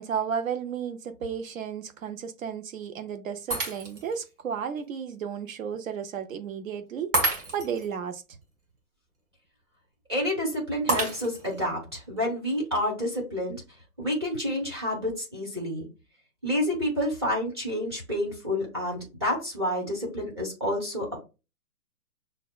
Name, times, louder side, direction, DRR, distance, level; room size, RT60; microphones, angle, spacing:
voice 1, 0.0-8.2, right 7 dB, 60° right, 0.7 m, -33 dB
Shatter, 3.5-4.2 4.8-4.9 7.1-7.9 10.9-11.6, right 2 dB, 35° right, 1.4 m, -29 dB
voice 2, 10.1-13.6 14.0-15.9 16.4-21.2, left 1 dB, 20° right, 0.7 m, -29 dB
6.2 x 2.2 x 2.3 m
hypercardioid pair, 170°, 46 cm